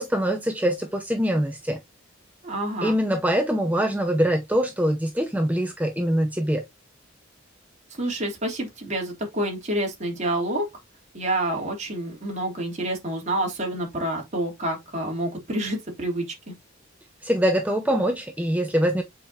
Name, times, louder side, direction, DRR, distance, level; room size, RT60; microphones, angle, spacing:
voice 1, 0.0-1.8 2.8-6.6 17.2-19.0, equal, 10° right, 0.7 m, -23 dB
voice 2, 2.4-2.9 8.0-10.7 11.1-16.5, right 1 dB, 35° right, 3.1 m, -28 dB
7.7 x 5.1 x 2.8 m
head